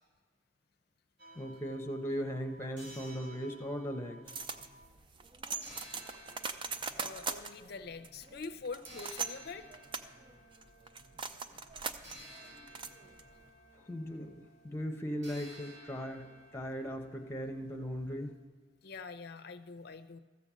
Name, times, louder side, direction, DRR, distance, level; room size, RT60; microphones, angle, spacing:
sound 1, 1.2-4.9 5.6-18.3, equal, 60° right, 2.5 m, -56 dB
voice 1, 1.3-4.3 13.9-18.3, equal, 10° left, 3 dB, 0.9 m, -38 dB
sound 2, 4.3-13.5, right 5 dB, 25° right, 0.4 m, -42 dB
voice 2, 7.0-9.7 11.5-11.6 18.8-20.2, left 4 dB, 55° left, 9 dB, 0.6 m, -44 dB
14.5 x 5.2 x 7.3 m, 1.5 s
head